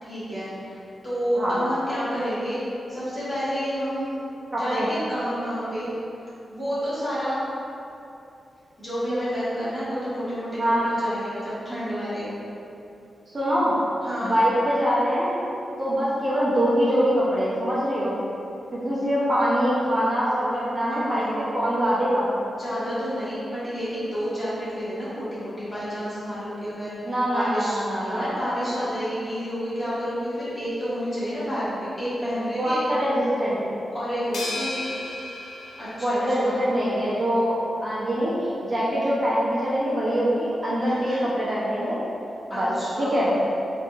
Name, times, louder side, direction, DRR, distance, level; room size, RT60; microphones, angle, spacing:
voice 1, 0.0-0.8 1.0-2.6 2.9-4.1 4.5-5.9 6.5-7.4 8.8-12.3 14.0-14.3 20.9-21.5 22.5-32.8 33.9-34.9 35.8-36.7 40.8-41.2 42.5-43.4, equal, 20° left, -12 dB, 1.5 m, -30 dB
voice 2, 4.5-4.9 10.6-10.9 13.3-13.8 14.2-15.3 15.8-18.2 18.7-22.3 27.0-28.3 32.5-33.6 36.0-42.0 42.5-43.3, equal, 35° right, -8 dB, 0.6 m, -24 dB
sound 1, 34.3-36.8, left 2 dB, 85° left, 0.6 m, -35 dB
4.0 x 2.7 x 2.4 m, 2.8 s
cardioid pair, 85°, 0 cm